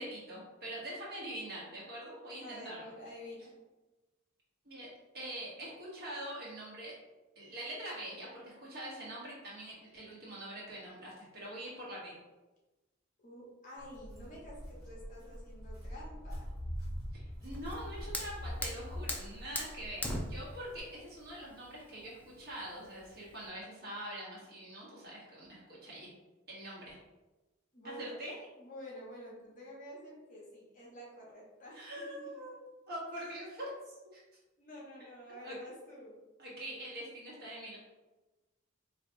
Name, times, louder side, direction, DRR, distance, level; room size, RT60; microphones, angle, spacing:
voice 1, 0.0-2.9 4.6-4.9 5.1-6.9 7.3-12.2 17.1-26.1 26.5-27.0 27.8-28.4 31.7-32.6 32.9-34.2 35.4-35.6 36.4-37.8, right 1 dB, 50° right, -5 dB, 1.3 m, -44 dB
voice 2, 2.4-3.5 13.2-16.5 27.7-28.2 28.6-32.3 33.1-33.3 34.6-36.2, equal, 40° left, -4 dB, 1.2 m, -49 dB
Walk footsteps, 13.8-20.8, equal, 20° right, 1.4 m, -44 dB
Fire, 17.5-23.5, left 1 dB, 10° left, 0.4 m, -42 dB
4.3 x 3.0 x 2.8 m, 1.1 s
head